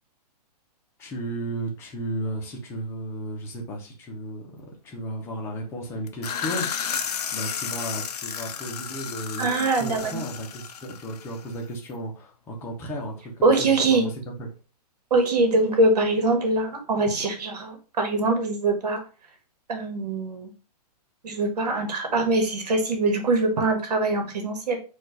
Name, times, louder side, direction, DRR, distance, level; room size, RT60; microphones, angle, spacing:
voice 1, 1.0-6.7 7.3-9.5 9.8-14.5, right 1 dB, 10° left, 0 dB, 0.7 m, -34 dB
sound 1, 6.1-11.6, left 7 dB, 75° left, 0.7 m, -32 dB
voice 2, 9.4-10.2 13.4-14.0 15.1-19.0 19.7-20.5 21.2-24.8, right 2 dB, 75° right, 4 dB, 1.6 m, -23 dB
4.5 x 2.5 x 4.6 m, 0.35 s
hypercardioid pair, 165°, 21 cm